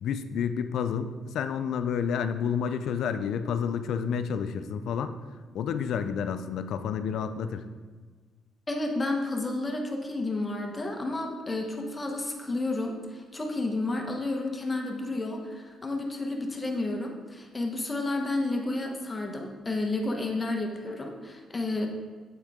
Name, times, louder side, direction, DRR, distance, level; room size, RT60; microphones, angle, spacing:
voice 1, 0.0-5.1 5.5-7.6, left 7 dB, 75° left, 10 dB, 0.3 m, -30 dB
voice 2, 8.7-21.9, left 2 dB, 25° left, 2 dB, 0.9 m, -31 dB
8.2 x 3.6 x 3.5 m, 1.4 s
cardioid pair, 90°, 0 cm